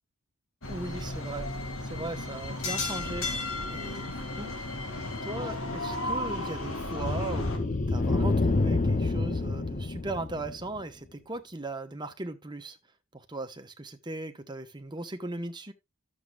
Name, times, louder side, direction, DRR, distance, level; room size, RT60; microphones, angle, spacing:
sound 1, 0.6-7.6, left 2 dB, 65° left, 2.3 m, -34 dB
voice 1, 0.7-1.5 1.8-3.3 3.7-4.6 5.2-12.8 13.1-15.7, right 2 dB, 20° right, 1.1 m, -38 dB
sound 2, 5.2-10.8, left 2 dB, 35° left, 0.7 m, -29 dB
12.5 x 7.5 x 2.4 m
head